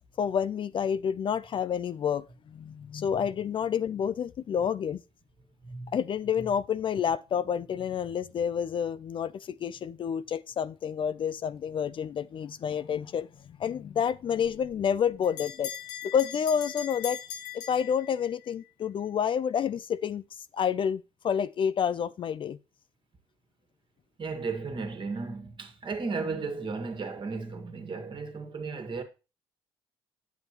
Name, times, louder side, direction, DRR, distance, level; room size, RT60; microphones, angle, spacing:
voice 1, 0.2-5.0 5.9-13.3 13.6-15.7 16.0-17.2 17.5-20.2 20.5-22.6, left 8 dB, 45° left, 0.4 m, -29 dB
voice 2, 5.6-6.0 6.4-6.5 24.2-29.0, right 4 dB, 40° right, 1.6 m, -35 dB
Bell, 14.4-18.5, left 9 dB, 80° left, 1.0 m, -40 dB
9.3 x 7.0 x 2.9 m
supercardioid pair, 65°, 12 cm